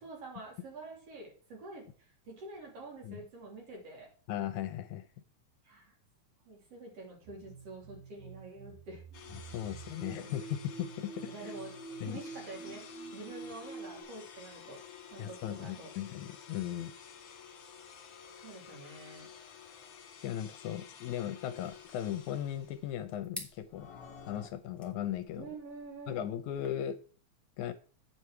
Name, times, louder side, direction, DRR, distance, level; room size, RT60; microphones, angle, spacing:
voice 1, 0.0-4.1 5.7-5.9 6.5-9.0 11.3-11.7 12.0-12.9 13.1-14.8 15.1-15.9 18.4-19.3 25.4-26.3, right 3 dB, 50° right, -1 dB, 3.6 m, -47 dB
voice 2, 4.3-5.1 9.3-11.5 12.0-12.2 15.2-16.9 20.2-23.9 24.3-25.5 26.1-27.0 27.6-27.7, left 11 dB, 80° left, 11 dB, 2.0 m, -37 dB
sound 1, 7.2-14.0, right 4 dB, 80° right, 2.9 m, -47 dB
sound 2, 9.1-23.0 23.7-24.5, left 7 dB, 65° left, 2.2 m, -52 dB
sound 3, 21.6-26.7, left 2 dB, ahead, 1.3 m, -52 dB
9.1 x 4.8 x 5.7 m, 0.39 s
omnidirectional pair, 3.5 m